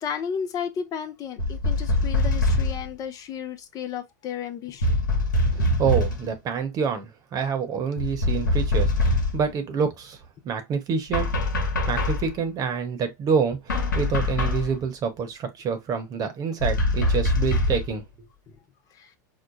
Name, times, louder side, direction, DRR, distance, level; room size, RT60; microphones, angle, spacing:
voice 1, 0.0-4.9 5.5-5.7 18.9-19.1, left 7 dB, 35° left, 0.5 m, -33 dB
sound 1, 1.4-2.9 4.8-6.3 8.0-9.5 11.1-12.3 13.7-14.7 16.6-17.9, left 1 dB, 85° left, 0.8 m, -23 dB
voice 2, 5.8-10.2 10.4-11.4 11.9-18.0, right 6 dB, 40° right, 0.9 m, -27 dB
4.8 x 2.1 x 2.5 m
hypercardioid pair, 95°, 10 cm